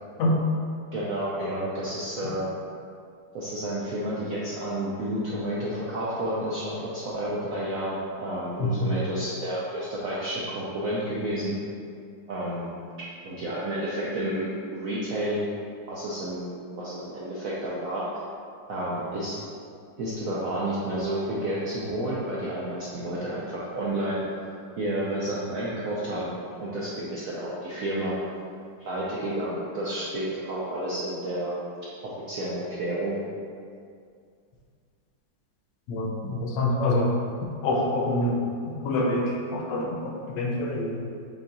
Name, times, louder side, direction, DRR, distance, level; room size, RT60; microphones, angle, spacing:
voice 1, 0.9-2.5 3.3-11.5 12.3-12.7 13.2-15.4 15.9-18.1 18.7-19.4 20.0-24.2 24.8-26.3 26.6-28.1 28.8-31.6 32.0-33.2, right 1 dB, 65° right, -7 dB, 0.9 m, -30 dB
voice 2, 8.6-8.9 35.9-37.1 37.6-38.4 38.8-41.0, left 1 dB, 75° left, -1 dB, 1.3 m, -26 dB
5.6 x 2.4 x 3.9 m, 2.3 s
omnidirectional pair, 2.0 m